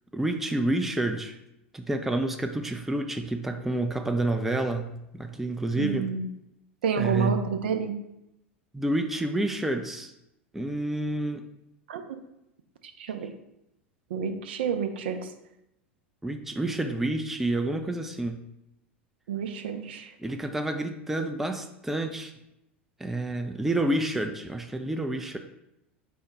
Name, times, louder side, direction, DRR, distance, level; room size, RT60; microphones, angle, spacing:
voice 1, 0.1-1.4 1.7-4.9 5.1-6.1 7.0-7.4 8.7-10.1 10.5-11.5 16.2-18.4 20.2-22.3 23.0-25.4, right 1 dB, 5° right, 5 dB, 0.3 m, -29 dB
voice 2, 5.8-6.3 6.8-7.9 11.9-12.0 13.0-13.3 14.1-15.3 19.3-20.1, right 7 dB, 65° right, 7 dB, 0.5 m, -29 dB
4.5 x 2.2 x 4.5 m, 0.85 s
figure-of-eight pair, 80°, 6 cm